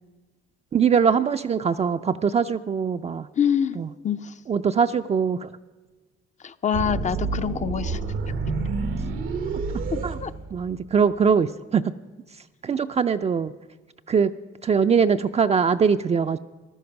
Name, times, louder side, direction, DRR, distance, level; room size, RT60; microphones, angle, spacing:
voice 1, 0.7-3.3 3.8-3.9 4.5-5.5 10.0-10.2 10.5-11.8 12.6-13.5 14.1-14.3 14.6-16.4, right 6 dB, 30° right, 8 dB, 0.4 m, -22 dB
voice 2, 3.4-4.3 6.4-8.0 9.9-10.3, left 8 dB, 35° left, 13 dB, 0.5 m, -26 dB
sound 1, 6.7-11.0, right 4 dB, 90° right, 1.1 m, -29 dB
15.0 x 12.0 x 5.8 m, 1.3 s
cardioid pair, 90°, 20 cm